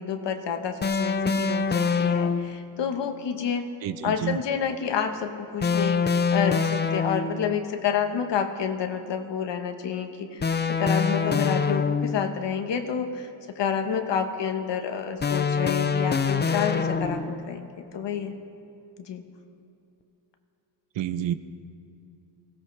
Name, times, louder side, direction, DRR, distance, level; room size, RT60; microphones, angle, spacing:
voice 1, 0.0-3.7 4.0-10.5 10.8-13.3 13.5-18.3 19.0-19.2, left 7 dB, 75° left, 6 dB, 1.2 m, -29 dB
sound 1, 0.8-2.6 5.6-7.5 10.4-12.3 15.2-17.4, left 5 dB, 25° left, 0.6 m, -25 dB
voice 2, 3.8-4.4 21.0-21.3, right 10 dB, 85° right, 12 dB, 0.7 m, -29 dB
20.5 x 16.5 x 3.3 m, 2.7 s
cardioid pair, 95°, 43 cm